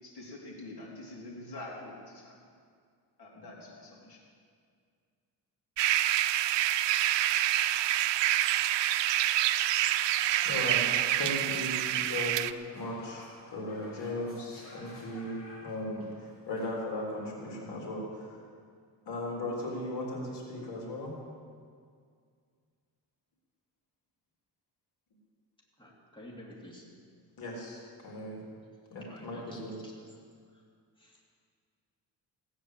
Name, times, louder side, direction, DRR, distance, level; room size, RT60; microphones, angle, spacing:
voice 1, 0.0-2.3 3.2-4.2, left 2 dB, 65° left, -4 dB, 4.2 m, -45 dB
sound 1, 5.8-12.5, right 13 dB, 85° right, 0.6 m, -27 dB
sound 2, 10.1-16.7, left 1 dB, 30° left, 2.8 m, -52 dB
voice 2, 10.4-18.4 19.1-21.1 27.4-28.4 28.9-29.8, left 1 dB, 80° left, -2 dB, 3.7 m, -37 dB
voice 3, 25.8-26.8 29.1-29.9 31.0-31.2, left 1 dB, 10° left, -3 dB, 2.7 m, -50 dB
17.5 x 9.5 x 7.5 m, 2.1 s
cardioid pair, 120°, 41 cm